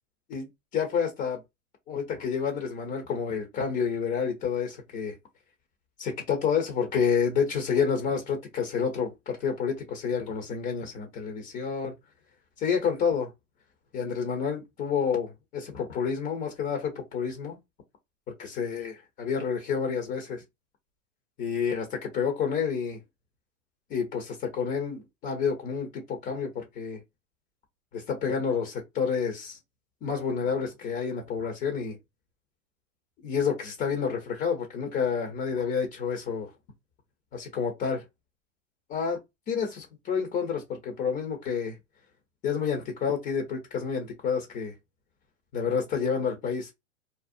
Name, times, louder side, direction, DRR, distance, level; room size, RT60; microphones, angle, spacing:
voice 1, 0.7-1.4 1.9-5.1 6.0-11.9 12.6-13.3 13.9-17.6 18.6-18.9 19.2-20.4 21.4-23.0 23.9-27.0 27.9-29.6 30.0-32.0 33.2-36.5 37.3-38.0 38.9-39.2 39.5-41.8 42.4-44.7 45.5-46.7, left 6 dB, 20° left, 0.3 m, -29 dB
2.6 x 2.0 x 2.4 m
hypercardioid pair, 115°, 41 cm